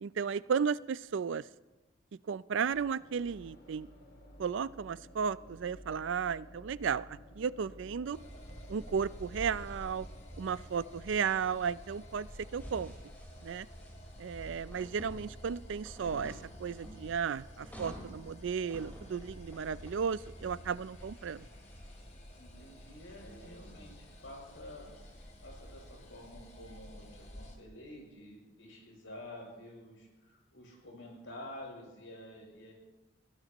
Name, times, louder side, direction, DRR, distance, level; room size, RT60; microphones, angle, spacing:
voice 1, 0.0-1.5 2.3-3.9 4.4-8.2 8.7-10.1 10.4-12.3 12.5-12.9 13.4-13.7 14.2-21.5, right 6 dB, 70° right, 18 dB, 0.4 m, -34 dB
sound 1, 2.5-14.3, equal, 50° left, 2.5 m, -55 dB
sound 2, 8.1-27.6, equal, 35° left, 2.1 m, -50 dB
sound 3, 12.6-26.3, equal, 10° left, 4.2 m, -53 dB
voice 2, 22.4-24.9 25.4-32.7, left 1 dB, 75° left, -1 dB, 7.0 m, -49 dB
22.0 x 17.0 x 3.0 m, 1.1 s
head